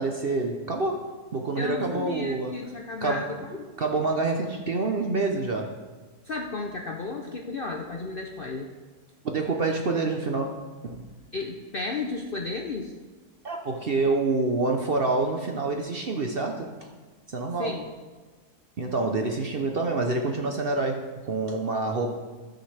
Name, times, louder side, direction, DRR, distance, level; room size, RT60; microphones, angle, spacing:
voice 1, 0.0-2.6 3.0-3.3 3.8-5.7 9.2-11.1 13.4-16.9 17.3-17.7 18.8-22.1, right 3 dB, 50° right, 3 dB, 0.8 m, -27 dB
voice 2, 1.6-3.7 6.2-8.7 11.3-12.9 17.6-17.9, left 3 dB, 50° left, 1 dB, 0.7 m, -33 dB
17.5 x 6.4 x 3.4 m, 1.3 s
omnidirectional pair, 1.7 m